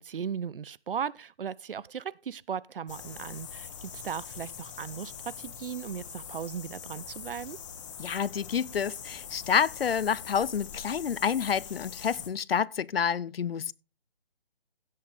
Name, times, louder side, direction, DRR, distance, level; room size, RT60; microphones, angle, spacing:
voice 1, 0.0-7.6, right 7 dB, 65° right, 0.6 m, -37 dB
sound 1, 2.9-12.3, left 7 dB, 30° left, 1.6 m, -43 dB
voice 2, 8.0-13.7, left 7 dB, 70° left, 0.6 m, -28 dB
16.5 x 6.6 x 3.4 m
figure-of-eight pair, 155°, 30 cm